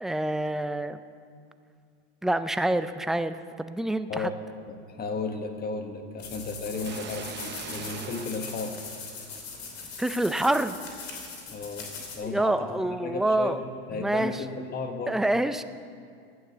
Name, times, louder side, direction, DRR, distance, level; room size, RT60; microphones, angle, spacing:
voice 1, 0.0-1.0 2.2-4.3 10.0-10.8 12.2-13.6 13.9-14.4 15.1-15.6, right 1 dB, ahead, 11 dB, 0.3 m, -27 dB
voice 2, 4.9-8.8 11.5-15.2, left 4 dB, 30° left, 6 dB, 1.3 m, -34 dB
sound 1, 6.2-12.2, left 5 dB, 85° left, 2.7 m, -40 dB
sound 2, 6.7-9.5, right 8 dB, 35° right, 0.8 m, -41 dB
11.0 x 9.0 x 6.7 m, 2.3 s
supercardioid pair, 100°, 31 cm